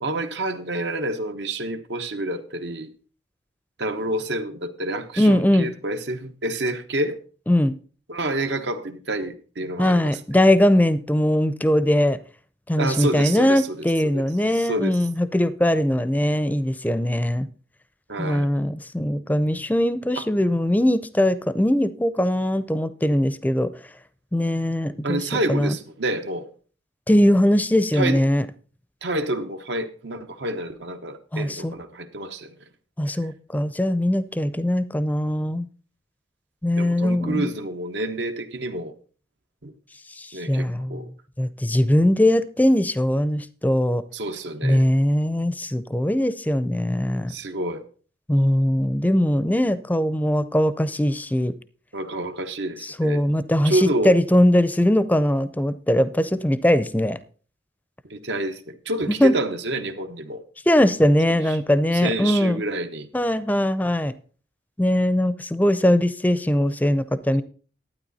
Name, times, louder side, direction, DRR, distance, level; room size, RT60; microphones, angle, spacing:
voice 1, 0.0-2.9 3.8-7.2 8.1-10.2 12.8-14.2 14.5-15.0 18.1-18.5 20.2-20.3 25.0-26.5 27.9-28.2 29.0-32.5 36.7-38.9 39.6-39.7 40.3-41.1 44.1-44.9 47.3-47.8 51.9-53.2 53.6-54.1 58.0-60.4 61.5-61.6 61.9-63.1, right 1 dB, 80° right, 1.0 m, -28 dB
voice 2, 5.2-5.7 7.5-7.8 9.8-12.2 12.7-17.5 18.2-23.7 24.3-25.8 27.1-28.5 31.3-31.7 33.0-35.7 36.6-37.5 40.2-41.0 41.4-44.0 44.6-47.3 48.3-51.5 52.8-57.2 59.2-59.3 60.7-62.6 63.1-64.1 64.8-67.4, left 1 dB, 10° left, 0.5 m, -21 dB
12.0 x 9.2 x 4.1 m
head